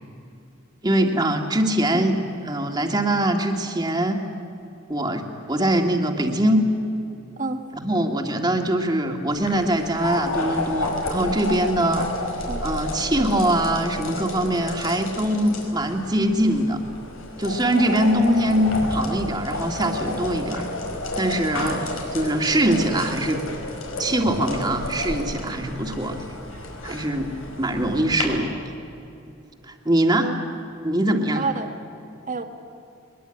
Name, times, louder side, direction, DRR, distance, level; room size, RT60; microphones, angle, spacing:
voice 1, 0.8-2.2 2.4-4.2 4.9-6.6 7.7-12.1 12.6-16.8 17.4-20.6 21.2-23.4 24.0-26.2 26.8-27.3 27.6-28.6 29.7-30.3 30.8-31.4, right 1 dB, 20° right, 3 dB, 2.0 m, -22 dB
sound 1, 9.3-28.2, left 2 dB, 85° left, 5.2 m, -31 dB
voice 2, 21.5-22.1 26.5-26.6 27.3-27.4 30.1-30.6 31.3-31.7 32.3-32.4, right 4 dB, 40° right, 6 dB, 1.6 m, -30 dB
22.0 x 21.5 x 9.0 m, 2.8 s
head